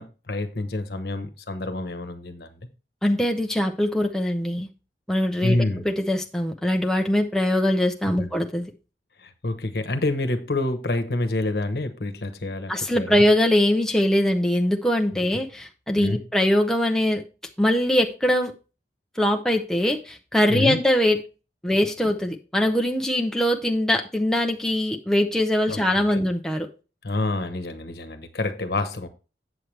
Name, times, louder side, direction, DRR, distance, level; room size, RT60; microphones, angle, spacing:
voice 1, 0.0-2.5 5.4-5.8 8.2-8.3 9.2-13.2 16.0-16.2 20.5-20.8 25.7-25.8 26.1-26.2 27.0-29.1, left 2 dB, 60° left, 1.1 m, -27 dB
voice 2, 3.0-4.7 5.1-8.7 12.7-17.2 17.6-18.5 19.2-21.2 21.6-26.7, left 1 dB, 5° left, 0.6 m, -22 dB
7.9 x 7.6 x 3.2 m
head